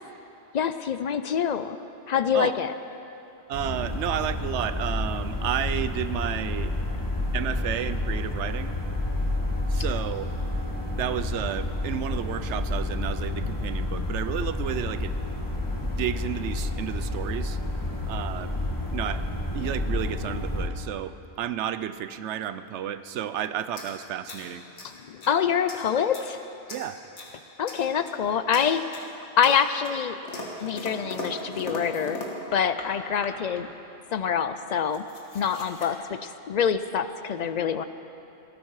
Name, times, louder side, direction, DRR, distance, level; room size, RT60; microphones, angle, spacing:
voice 1, 0.5-1.8 2.1-2.7 24.8-26.4 27.6-30.2 30.6-32.2 32.5-33.7 34.1-35.0 35.3-37.8, left 7 dB, 60° left, 11 dB, 0.4 m, -26 dB
sound 1, 3.5-20.7, left 2 dB, 15° left, 1.5 m, -30 dB
voice 2, 3.5-6.7 7.3-8.7 9.7-10.3 10.9-15.1 15.8-17.6 18.1-18.5 18.9-19.3 19.5-24.6 26.7-27.0, right 10 dB, 80° right, 13 dB, 0.9 m, -32 dB
sound 2, 23.7-25.4 25.7-26.3 26.7-27.4 27.7-28.2 28.5-29.1 29.4-32.9 33.2-33.6 34.4-34.5 34.7-35.9, left 1 dB, 85° left, 2.0 m, -39 dB
18.0 x 13.5 x 4.7 m, 2.8 s
omnidirectional pair, 1.2 m